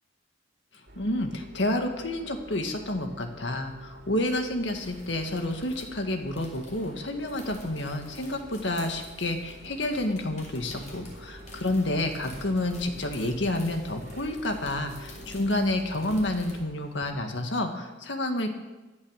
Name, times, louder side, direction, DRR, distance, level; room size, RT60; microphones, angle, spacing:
sound 1, 0.9-16.7, equal, 65° right, 2.5 m, -49 dB
voice 1, 1.0-18.5, left 1 dB, 70° left, 5 dB, 1.9 m, -29 dB
sound 2, 4.5-17.0, left 1 dB, 40° left, 5.1 m, -49 dB
15.5 x 11.5 x 6.6 m, 1.1 s
head